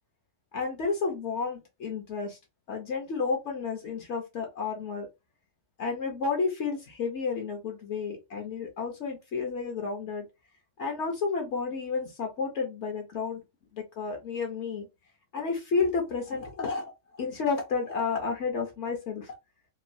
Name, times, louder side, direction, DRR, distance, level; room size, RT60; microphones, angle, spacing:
voice 1, 0.5-2.4 2.7-5.1 5.8-10.2 10.8-13.4 13.7-14.9 15.3-19.3, left 5 dB, 70° left, 2 dB, 1.0 m, -31 dB
3.0 x 2.2 x 2.5 m, 0.23 s
omnidirectional pair, 1.3 m